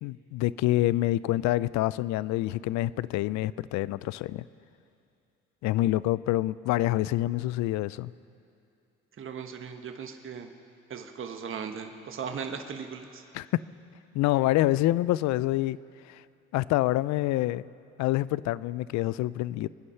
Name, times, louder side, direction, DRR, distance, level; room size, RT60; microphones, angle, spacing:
voice 1, 0.0-4.4 5.6-8.1 13.3-13.5 14.1-15.8 16.1-16.2 16.5-17.7 18.0-19.7, left 16 dB, 65° left, 19 dB, 0.5 m, -26 dB
voice 2, 9.1-10.5 10.9-13.2, right 6 dB, 40° right, 5 dB, 1.3 m, -38 dB
25.0 x 9.8 x 5.8 m, 2.6 s
hypercardioid pair, 65°, 30 cm